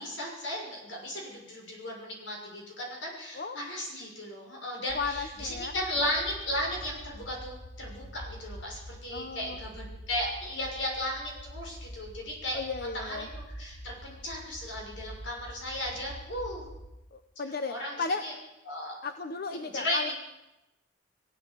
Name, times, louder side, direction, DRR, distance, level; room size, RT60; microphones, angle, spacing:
voice 1, 0.0-12.6 12.9-13.3 13.5-16.6 17.7-18.3 18.7-19.0 19.5-20.1, left 1 dB, 70° left, -1 dB, 6.3 m, -35 dB
voice 2, 4.9-5.7 9.1-9.6 12.5-13.3 17.1-18.3 19.0-20.1, left 4 dB, 55° left, 8 dB, 1.0 m, -35 dB
sound 1, 4.9-16.9, equal, 5° left, 4.1 m, -46 dB
19.5 x 15.5 x 8.5 m, 0.98 s
head